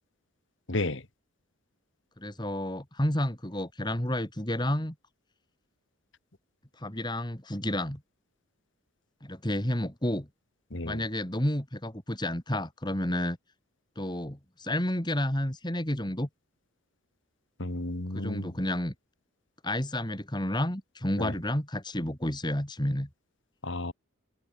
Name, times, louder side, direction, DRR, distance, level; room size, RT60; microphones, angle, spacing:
voice 1, 0.7-1.0 10.7-11.0 17.6-18.5 21.2-21.3 23.6-23.9, left 2 dB, 55° left, 1.7 m, -32 dB
voice 2, 2.2-4.9 6.8-8.0 9.2-10.3 10.8-13.4 14.0-16.3 18.1-18.9 19.6-23.1, left 1 dB, 20° left, 2.9 m, -30 dB
head